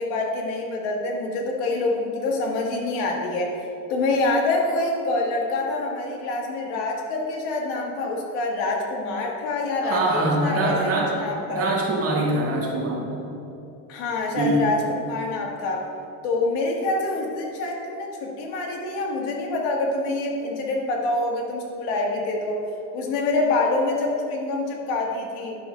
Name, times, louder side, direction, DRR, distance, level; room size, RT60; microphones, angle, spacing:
voice 1, 0.0-3.6 3.9-11.7 13.9-15.9 16.2-22.6 22.9-25.6, left 2 dB, 75° left, 0 dB, 1.7 m, -26 dB
voice 2, 9.8-11.1 11.5-13.2 14.4-14.7, right 2 dB, 35° right, -2 dB, 1.7 m, -23 dB
10.0 x 6.3 x 3.3 m, 2.9 s
cardioid pair, 135°, 40 cm